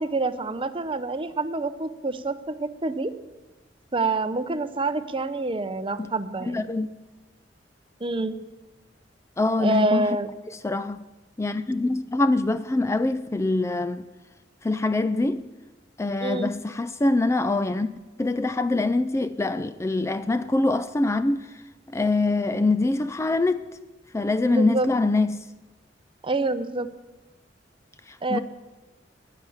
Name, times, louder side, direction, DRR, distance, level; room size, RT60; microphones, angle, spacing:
voice 1, 0.0-3.1 3.9-6.7 8.0-8.4 9.6-10.3 16.2-16.5 24.4-24.9 26.2-26.9 28.2-28.4, right 3 dB, 30° right, 0.7 m, -27 dB
voice 2, 6.5-6.9 9.4-10.1 10.6-11.0 11.4-14.1 14.6-15.5 16.0-17.9 18.2-21.6 21.9-23.6 24.1-25.4 28.1-28.4, left 2 dB, 15° left, 0.4 m, -24 dB
15.0 x 10.0 x 7.2 m
head